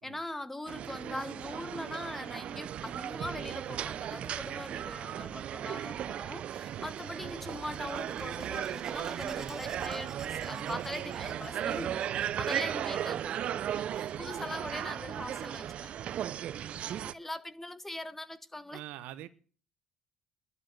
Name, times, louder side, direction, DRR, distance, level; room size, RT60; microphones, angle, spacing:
voice 1, 0.0-15.9 16.8-18.8, left 1 dB, 10° left, 1.3 m, -41 dB
sound 1, 0.7-17.1, right 10 dB, 55° right, 0.6 m, -36 dB
sound 2, 6.3-16.9, right 5 dB, 35° right, 2.8 m, -60 dB
sound 3, 6.5-13.0, right 3 dB, 15° right, 2.7 m, -52 dB
voice 2, 18.7-19.3, right 13 dB, 75° right, 1.0 m, -46 dB
11.5 x 11.5 x 7.7 m
supercardioid pair, 85°, 2 cm